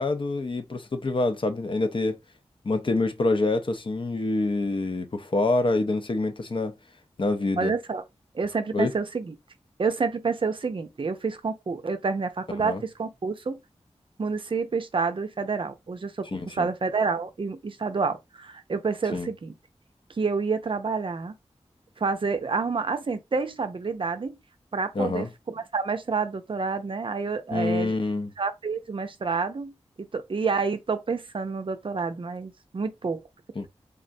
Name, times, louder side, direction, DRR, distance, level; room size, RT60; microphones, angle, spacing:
voice 1, 0.0-2.2 2.6-6.7 7.2-7.7 8.7-8.9 12.6-12.8 16.3-16.7 19.1-19.3 24.9-25.3 27.5-28.3 33.6-33.7, left 2 dB, 50° left, 0.6 m, -26 dB
voice 2, 7.6-8.0 8.3-9.3 9.8-13.6 14.2-16.3 16.6-19.5 20.2-21.3 22.0-24.4 24.7-28.0 28.4-29.7 30.1-33.2, right 4 dB, 50° right, 0.5 m, -28 dB
3.6 x 2.0 x 2.6 m
cardioid pair, 45°, 11 cm